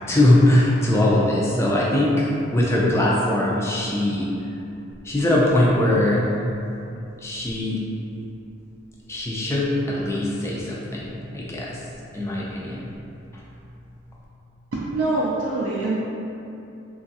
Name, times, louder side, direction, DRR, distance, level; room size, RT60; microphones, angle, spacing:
voice 1, 0.1-2.3 2.5-4.3 5.0-6.2 7.2-7.8 9.1-11.8 12.1-12.9, left 1 dB, 15° left, -5 dB, 0.3 m, -21 dB
voice 2, 14.7-16.0, right 2 dB, 65° right, -7 dB, 0.3 m, -24 dB
3.0 x 2.3 x 2.7 m, 2.8 s
head